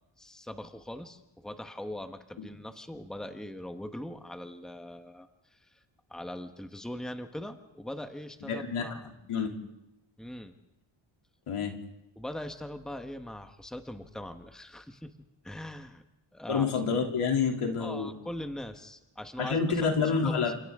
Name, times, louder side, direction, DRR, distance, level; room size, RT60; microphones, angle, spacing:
voice 1, 0.2-5.8 6.1-9.1 10.2-10.5 12.2-15.1 15.4-16.0 16.3-16.7 17.8-20.5, left 1 dB, ahead, 6 dB, 1.3 m, -41 dB
voice 2, 8.5-8.9 9.3-9.5 11.5-11.7 16.5-18.1 19.4-20.5, left 5 dB, 85° left, 2 dB, 3.1 m, -28 dB
29.5 x 27.0 x 3.7 m, 0.90 s
wide cardioid pair, 120°, 50 cm